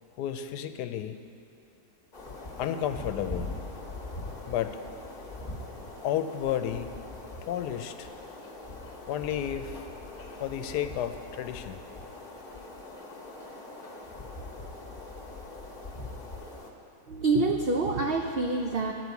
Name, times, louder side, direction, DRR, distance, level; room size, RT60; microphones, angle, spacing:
voice 1, 0.2-1.2 2.6-3.5 4.5-4.8 6.0-7.0 7.4-8.1 9.1-9.9 10.4-11.8, left 10 dB, 85° left, 9 dB, 1.2 m, -32 dB
sound 1, 2.1-16.7, left 2 dB, 30° left, 1.2 m, -42 dB
voice 2, 17.1-18.9, right 3 dB, 90° right, 2 dB, 0.5 m, -26 dB
13.0 x 4.7 x 8.2 m, 2.5 s
omnidirectional pair, 1.7 m